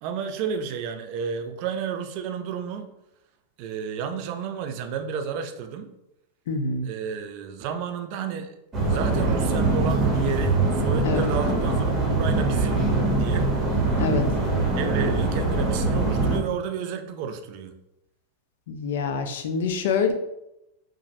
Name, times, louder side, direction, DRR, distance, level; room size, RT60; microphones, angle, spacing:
voice 1, 0.0-2.9 3.6-5.9 6.8-8.5 8.8-13.5 14.8-17.7, right 6 dB, 55° right, 8 dB, 0.3 m, -31 dB
voice 2, 6.5-6.9 11.0-11.3 14.0-14.3 18.7-20.1, left 5 dB, 75° left, 7 dB, 0.4 m, -26 dB
sound 1, 8.7-16.4, right 2 dB, 20° right, 0.9 m, -23 dB
2.9 x 2.5 x 2.6 m, 0.86 s
supercardioid pair, 125°, 0 cm